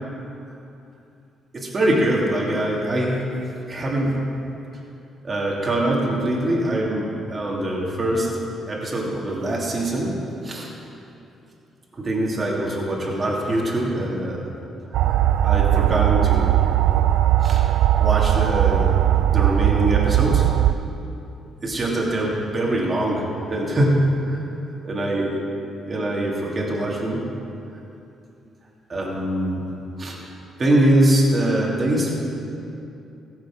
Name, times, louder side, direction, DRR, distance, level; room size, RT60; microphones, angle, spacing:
voice 1, 1.5-3.3 3.7-4.2 5.2-8.4 8.7-10.1 10.4-10.7 11.9-14.5 15.0-15.2 15.4-16.6 17.4-17.6 18.0-19.0 19.2-20.5 21.6-24.4 24.8-25.4 25.8-27.3 28.9-29.6 30.0-30.2 30.6-32.3, right 1 dB, 35° right, -4 dB, 2.9 m, -23 dB
sound 1, 14.9-20.7, right 12 dB, 85° right, 0.4 m, -18 dB
15.5 x 7.7 x 6.1 m, 2.8 s
cardioid pair, 90°, 0 cm